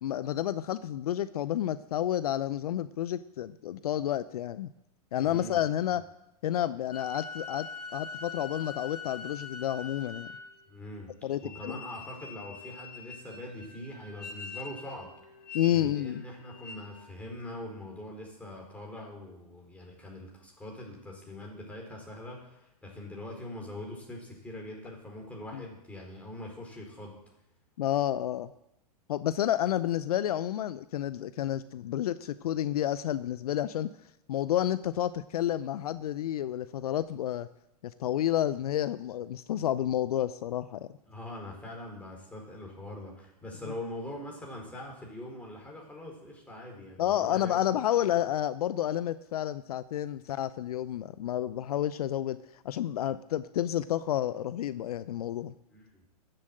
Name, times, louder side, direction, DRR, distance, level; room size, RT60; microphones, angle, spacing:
voice 1, 0.0-4.7 5.1-6.0 6.4-7.7 7.9-10.3 11.2-11.8 15.5-16.2 25.5-25.6 27.8-28.5 29.1-33.9 34.3-37.5 37.8-40.9 47.0-55.5, left 11 dB, 65° left, 15 dB, 0.6 m, -30 dB
voice 2, 5.2-5.6 5.9-6.0 10.7-11.1 11.4-15.1 15.7-27.2 41.1-47.7 55.7-56.0, left 1 dB, 5° left, -1 dB, 4.5 m, -43 dB
sound 1, 6.9-10.7 11.4-17.1, left 4 dB, 80° left, 2.1 m, -44 dB
13.5 x 7.7 x 7.7 m, 0.86 s
hypercardioid pair, 110°, 20 cm